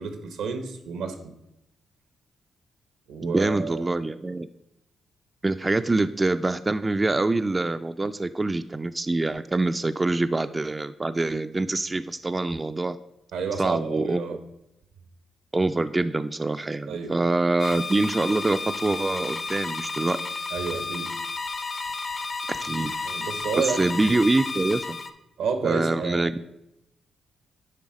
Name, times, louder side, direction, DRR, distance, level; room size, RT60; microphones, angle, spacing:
voice 1, 0.0-1.3 3.1-3.9 13.3-14.4 16.9-17.1 20.5-21.1 23.0-24.1 25.4-26.3, right 5 dB, 85° right, 8 dB, 0.9 m, -30 dB
voice 2, 3.2-4.5 5.4-13.0 13.6-14.2 15.5-20.2 22.6-22.9 23.6-25.0 25.6-26.5, right 2 dB, 25° right, 10 dB, 0.3 m, -25 dB
sound 1, 17.6-25.1, left 4 dB, 50° left, 0.7 m, -32 dB
10.0 x 3.5 x 4.9 m, 0.86 s
supercardioid pair, 55°, 0 cm